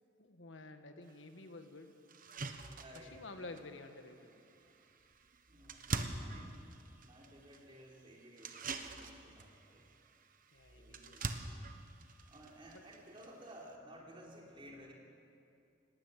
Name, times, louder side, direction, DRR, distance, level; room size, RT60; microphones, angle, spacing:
voice 1, 0.2-1.9 3.1-4.3 10.5-11.6 12.7-12.8, left 2 dB, 90° left, 7 dB, 1.6 m, -51 dB
sound 1, 1.1-1.2 1.6-1.7 2.1-13.7, right 3 dB, 45° right, 1.1 m, -46 dB
voice 2, 2.7-3.2 4.0-4.2 4.6-4.9 5.5-6.6 7.0-9.9 10.7-11.8 12.3-14.9, equal, 30° right, -1 dB, 3.6 m, -56 dB
19.0 x 16.0 x 9.2 m, 2.6 s
head